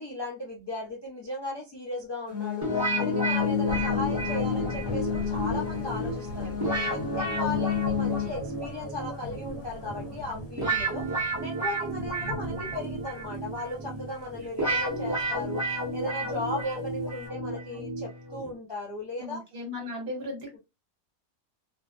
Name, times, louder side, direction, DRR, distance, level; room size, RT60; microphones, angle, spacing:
voice 1, 0.0-2.7 3.0-6.5 6.9-11.0 11.4-15.6 15.9-19.4, left 2 dB, 45° left, -5 dB, 0.3 m, -36 dB
sound 1, 2.3-8.3, left 9 dB, 15° left, 0.8 m, -31 dB
sound 2, 2.6-18.5, right 1 dB, 15° right, 0.7 m, -32 dB
Thunder / Rain, 3.3-17.3, equal, 85° left, 1.0 m, -41 dB
voice 2, 19.2-20.6, left 2 dB, 50° right, 1 dB, 1.1 m, -36 dB
2.5 x 2.0 x 2.4 m, 0.25 s
omnidirectional pair, 1.4 m